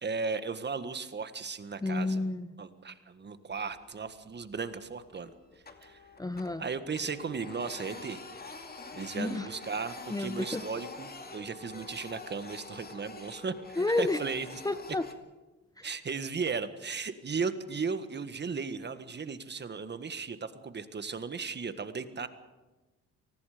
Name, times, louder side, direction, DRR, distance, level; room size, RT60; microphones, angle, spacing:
voice 1, 0.0-2.2 2.6-5.3 5.8-6.0 6.6-8.2 8.9-14.6 15.8-22.3, right 5 dB, 35° right, 11 dB, 1.6 m, -36 dB
voice 2, 1.8-2.5 6.2-6.6 9.2-9.5 10.1-10.6 13.8-14.2 14.6-15.1 15.8-15.9, left 2 dB, 10° left, 12 dB, 0.8 m, -30 dB
Printer, 3.5-4.2 4.5-4.7 5.1-6.7 6.9-15.1, left 3 dB, 30° left, 2.5 m, -46 dB
29.0 x 19.5 x 5.1 m, 1.2 s
cardioid pair, 90°, 30 cm